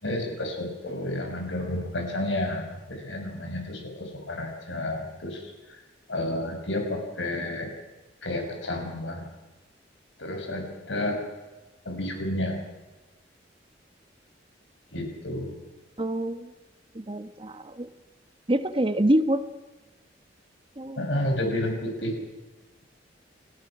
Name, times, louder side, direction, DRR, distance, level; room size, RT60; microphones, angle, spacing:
voice 1, 0.0-5.5 6.1-7.7 8.2-9.3 10.2-11.2 11.8-12.6 14.9-15.5 21.0-22.2, left 1 dB, 80° left, 3 dB, 6.4 m, -31 dB
voice 2, 16.0-16.5 16.9-17.9 18.5-19.4 20.8-21.0, right 1 dB, 30° right, 10 dB, 1.1 m, -26 dB
30.0 x 17.5 x 6.1 m, 1.2 s
head